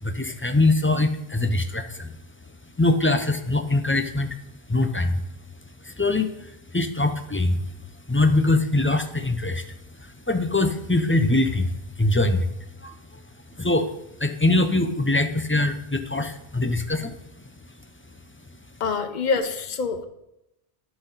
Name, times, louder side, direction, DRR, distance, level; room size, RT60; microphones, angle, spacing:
voice 1, 0.0-2.1 2.8-4.4 4.7-5.2 5.8-7.6 8.1-13.2 13.5-13.9 14.2-17.5, left 2 dB, 20° left, 7 dB, 0.4 m, -23 dB
voice 2, 18.8-20.0, left 4 dB, 50° left, 8 dB, 0.9 m, -25 dB
11.5 x 6.0 x 4.0 m, 0.86 s
omnidirectional pair, 1.1 m